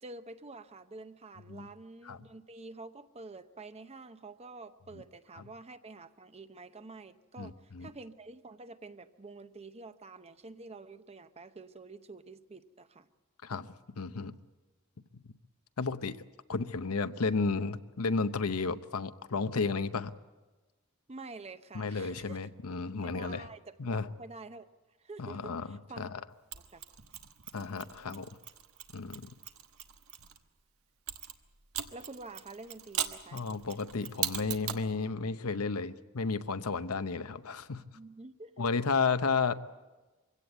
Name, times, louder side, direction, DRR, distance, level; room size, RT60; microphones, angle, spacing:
voice 1, 0.0-13.1 21.1-22.4 22.9-24.7 25.0-26.1 26.6-26.9 31.9-33.4 37.8-38.7, right 3 dB, 30° right, 11 dB, 0.8 m, -48 dB
voice 2, 7.4-7.9 13.4-13.7 14.0-14.3 15.2-15.3 15.8-16.2 16.5-20.1 21.7-23.5 23.8-24.1 25.2-26.1 27.5-28.4 28.9-29.3 33.3-37.8 38.6-39.5, left 4 dB, 85° left, 11 dB, 0.8 m, -33 dB
Mechanisms, 26.5-30.4 31.1-34.9, right 10 dB, 85° right, 1.3 m, -40 dB
23.5 x 17.0 x 8.1 m, 1.2 s
head